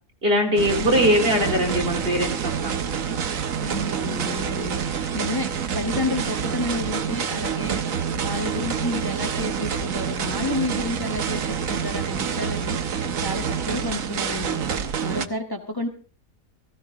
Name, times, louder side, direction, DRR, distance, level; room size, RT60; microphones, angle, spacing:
voice 1, 0.2-2.3 2.6-2.8, equal, 45° right, 0 dB, 3.8 m, -21 dB
sound 1, 0.6-15.3, right 7 dB, 80° right, 1.5 m, -27 dB
voice 2, 0.8-1.2 3.6-5.5 5.7-15.9, left 2 dB, 15° left, 3 dB, 1.5 m, -31 dB
17.5 x 16.0 x 3.6 m, 0.39 s
omnidirectional pair, 1.4 m